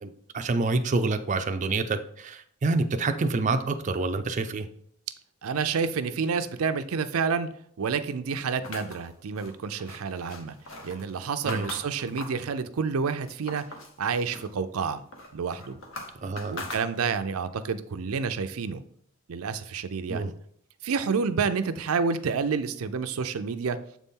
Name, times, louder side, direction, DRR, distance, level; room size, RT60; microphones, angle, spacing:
voice 1, 0.0-4.7 11.4-11.7 16.2-16.6 20.1-20.3, right 3 dB, 35° right, 7 dB, 0.4 m, -27 dB
voice 2, 5.4-7.5 7.8-10.6 10.8-13.6 14.0-15.0 15.3-15.8 16.5-18.8 19.3-20.3 20.8-23.8, right 5 dB, 90° right, 10 dB, 0.5 m, -29 dB
sound 1, 8.6-12.5 12.9-14.0 14.3-17.3, left 2 dB, 65° left, 1.1 m, -42 dB
7.4 x 4.1 x 3.7 m, 0.65 s
head